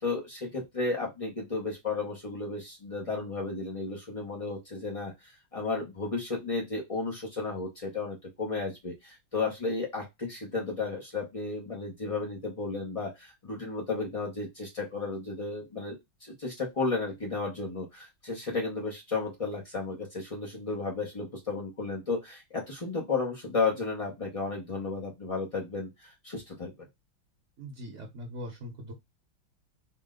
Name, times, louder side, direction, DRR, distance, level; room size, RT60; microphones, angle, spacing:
voice 1, 0.0-5.1 5.5-16.0 16.2-26.7, left 3 dB, 55° left, -2 dB, 0.3 m, -33 dB
voice 2, 27.6-28.9, equal, 50° right, 1 dB, 0.9 m, -41 dB
4.4 x 2.1 x 3.7 m, 0.20 s
omnidirectional pair, 2.3 m